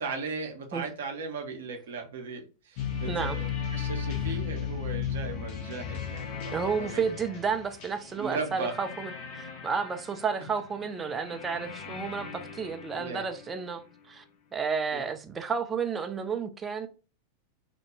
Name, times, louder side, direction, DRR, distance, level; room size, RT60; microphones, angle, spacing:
voice 1, 0.0-7.1 8.2-8.7 13.0-13.3 14.9-15.0, right 4 dB, 60° right, 0.6 m, -37 dB
sound 1, 2.8-13.6, left 7 dB, 50° left, 0.7 m, -36 dB
voice 2, 6.5-13.8 14.1-14.2 14.5-16.9, right 5 dB, 20° right, 0.4 m, -31 dB
2.3 x 2.1 x 3.0 m
figure-of-eight pair, 90°, 0 cm